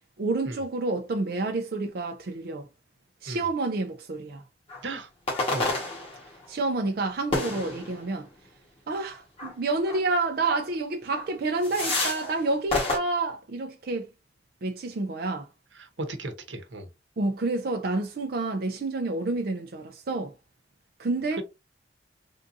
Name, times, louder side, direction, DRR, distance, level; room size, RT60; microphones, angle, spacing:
voice 1, 0.2-2.7 3.2-4.4 6.5-8.3 8.9-14.1 14.6-15.5 17.2-20.3 21.0-21.4, right 3 dB, 55° right, 0.5 m, -29 dB
sound 1, 4.7-4.9 5.3-6.5 7.3-8.2 9.4-9.5 9.9-10.0 10.5-10.6 11.1-11.3 11.6-12.4 12.7-13.0, left 2 dB, 35° left, 1.4 m, -29 dB
voice 2, 15.8-16.9, right 2 dB, 90° right, 0.9 m, -35 dB
3.6 x 2.6 x 2.6 m
head